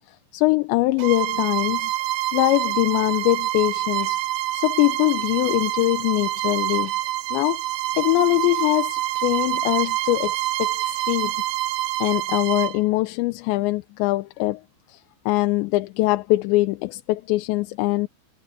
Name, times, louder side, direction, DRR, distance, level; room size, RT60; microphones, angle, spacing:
voice 1, 0.3-1.9 2.3-4.2 4.5-6.9 7.3-7.6 8.0-11.4 12.0-14.6 14.9-15.0 15.3-18.1, left 20 dB, 85° left, 3.0 m, -22 dB
Bowed string instrument, 1.0-12.8, right 15 dB, 80° right, 2.7 m, -26 dB
omnidirectional pair, 5.1 m